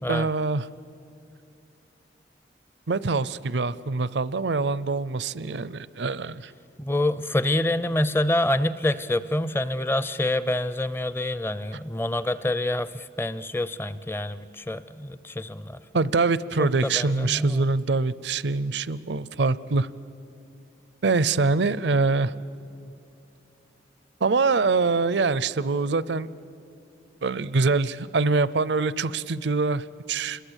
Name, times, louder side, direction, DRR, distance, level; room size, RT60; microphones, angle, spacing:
voice 1, 0.1-0.7 2.9-6.5 15.9-19.9 21.0-22.3 24.2-26.3 27.2-30.4, right 3 dB, 75° right, 18 dB, 0.6 m, -24 dB
voice 2, 6.8-15.8 16.6-17.6, left 1 dB, 10° left, 15 dB, 0.5 m, -27 dB
27.5 x 22.0 x 8.2 m, 2.5 s
head